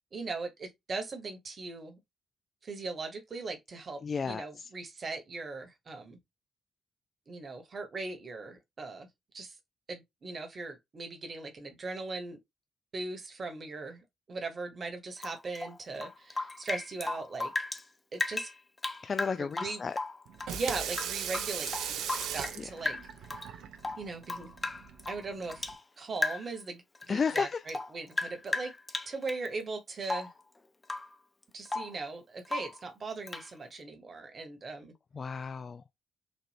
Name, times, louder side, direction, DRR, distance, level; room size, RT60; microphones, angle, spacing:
voice 1, 0.1-2.0 2.6-6.2 7.3-9.1 9.3-9.5 9.9-12.4 12.9-17.5 18.1-18.5 19.4-19.8 20.5-22.0 22.3-23.0 24.0-24.5 25.1-25.7 26.0-28.7 29.1-30.3 31.5-34.9, right 3 dB, 50° right, 1.1 m, -39 dB
voice 2, 4.0-4.7 19.0-20.0 22.6-22.7 27.1-27.6 35.1-35.8, left 5 dB, 45° left, 0.3 m, -33 dB
Rain / Drip, 15.2-17.8 18.1-20.6 20.9-22.6 22.8-23.5 23.8-25.8 26.2-26.6 26.9-29.5 30.0-30.4 30.8-31.1 31.4-32.0 32.4-32.8 33.3-33.5, left 2 dB, 30° left, 0.7 m, -36 dB
Water tap faucet / Sink (filling or washing), 20.3-25.8, right 9 dB, 70° right, 0.4 m, -39 dB
4.1 x 2.5 x 3.3 m
hypercardioid pair, 40°, 0 cm